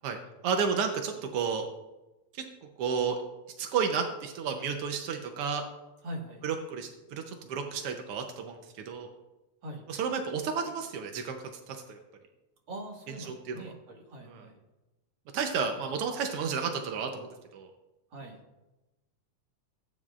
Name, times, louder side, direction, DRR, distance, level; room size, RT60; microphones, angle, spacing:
voice 1, 0.0-1.7 2.3-2.4 2.8-3.2 3.6-5.6 6.4-9.1 9.9-11.4 11.7-12.0 13.1-13.7 14.3-14.4 15.3-17.3 17.5-17.7, right 6 dB, 80° right, 4 dB, 1.3 m, -32 dB
voice 2, 6.0-6.4 9.6-9.8 12.7-14.5 18.1-18.4, right 1 dB, 40° right, -1 dB, 2.3 m, -42 dB
18.0 x 9.2 x 2.5 m, 1.0 s
omnidirectional pair, 3.6 m